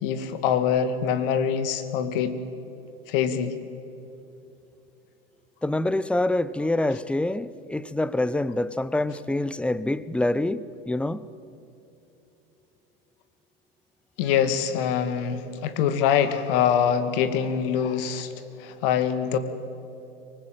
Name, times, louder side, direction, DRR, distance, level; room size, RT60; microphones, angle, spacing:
voice 1, 0.0-2.4 3.1-3.6 14.2-18.3 18.6-19.4, left 8 dB, 65° left, 2.1 m, -24 dB
voice 2, 5.6-11.3, left 1 dB, 5° left, 0.7 m, -26 dB
24.0 x 20.0 x 7.7 m
hypercardioid pair, 95°, 30 cm